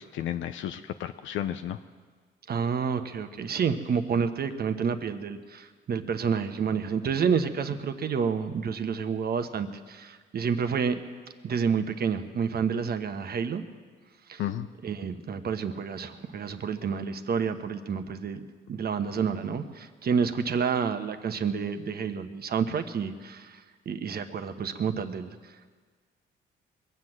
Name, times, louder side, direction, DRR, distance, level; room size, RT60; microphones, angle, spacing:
voice 1, 0.0-1.8 14.4-14.7, left 11 dB, 80° left, 9 dB, 0.5 m, -33 dB
voice 2, 2.5-11.0 11.4-13.6 14.3-14.4 14.8-25.5, right 6 dB, 50° right, 9 dB, 1.1 m, -29 dB
21.5 x 8.0 x 7.5 m, 1.5 s
cardioid pair, 90°, 20 cm